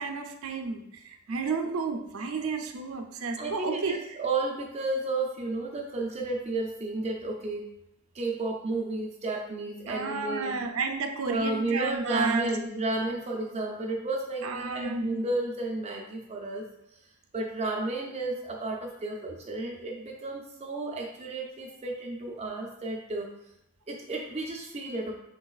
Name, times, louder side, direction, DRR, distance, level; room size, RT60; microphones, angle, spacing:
voice 1, 0.0-4.2 9.9-12.5 14.4-15.0, right 4 dB, 80° right, 4 dB, 0.5 m, -32 dB
voice 2, 3.4-7.7 8.1-10.6 11.3-16.6 17.3-23.3 23.9-25.1, right 2 dB, 30° right, 0 dB, 0.4 m, -32 dB
4.6 x 3.9 x 2.3 m, 0.81 s
head